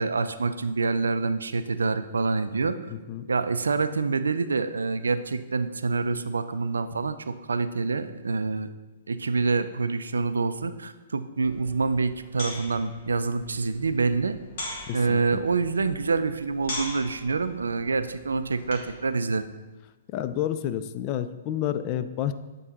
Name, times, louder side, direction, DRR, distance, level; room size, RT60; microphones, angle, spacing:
voice 1, 0.0-2.8 3.3-8.7 9.1-14.4 14.9-19.5, right 4 dB, 75° right, 12 dB, 0.3 m, -26 dB
voice 2, 2.9-3.3 14.8-15.4 20.1-22.3, left 11 dB, 35° left, 11 dB, 0.3 m, -30 dB
sound 1, 11.4-19.0, left 2 dB, 50° left, 1.7 m, -41 dB
7.2 x 3.8 x 3.9 m, 1.2 s
figure-of-eight pair, 115°, 0 cm